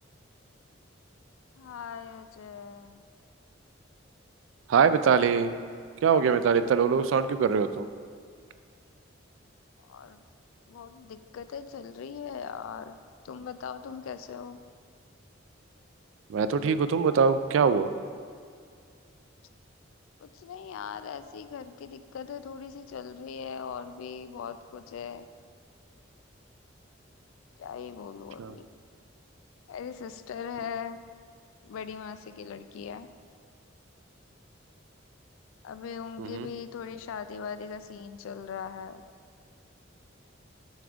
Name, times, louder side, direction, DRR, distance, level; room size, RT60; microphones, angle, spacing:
voice 1, 1.6-3.0 9.8-10.2 10.7-13.0 13.2-14.6 20.2-25.3 27.6-28.7 29.7-31.0 31.6-33.1 35.6-39.0, left 7 dB, 85° left, 11 dB, 0.3 m, -40 dB
voice 2, 4.7-5.5 6.0-7.9 16.3-17.9 28.4-28.5 36.2-36.5, right 6 dB, 75° right, 12 dB, 0.3 m, -23 dB
7.3 x 3.5 x 4.9 m, 2.1 s
head